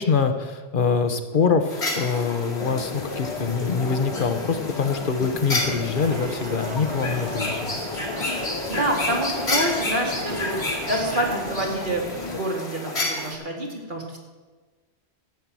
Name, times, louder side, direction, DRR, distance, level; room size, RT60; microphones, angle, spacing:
voice 1, 0.0-7.8, left 5 dB, 50° left, 8 dB, 1.2 m, -24 dB
sound 1, 1.7-13.3, left 2 dB, 75° left, 2.5 m, -31 dB
sound 2, 2.6-12.4, left 4 dB, 35° left, 0.7 m, -34 dB
sound 3, 5.9-11.5, right 6 dB, 80° right, 1.2 m, -38 dB
voice 2, 8.7-14.2, right 1 dB, 50° right, 0 dB, 2.5 m, -27 dB
13.0 x 8.9 x 7.5 m, 1.3 s
omnidirectional pair, 1.1 m